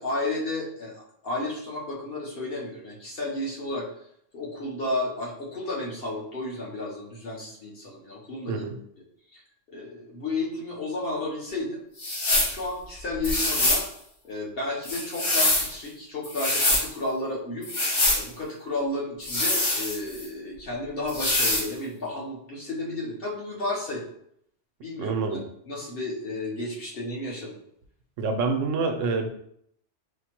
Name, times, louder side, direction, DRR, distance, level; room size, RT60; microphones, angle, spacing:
voice 1, 0.0-3.9 4.3-8.6 9.3-9.4 9.7-13.9 14.2-17.7 18.1-24.0 24.8-27.6, left 2 dB, 55° left, -3 dB, 1.0 m, -32 dB
sound 1, 12.0-12.6 13.2-13.9 14.8-15.7 16.2-16.9 17.6-18.2 19.2-20.2 21.1-21.7, left 2 dB, 85° left, 1.5 m, -24 dB
voice 2, 25.0-25.4 28.2-29.3, right 4 dB, 80° right, 5 dB, 0.9 m, -26 dB
5.0 x 2.1 x 2.9 m, 0.70 s
omnidirectional pair, 1.3 m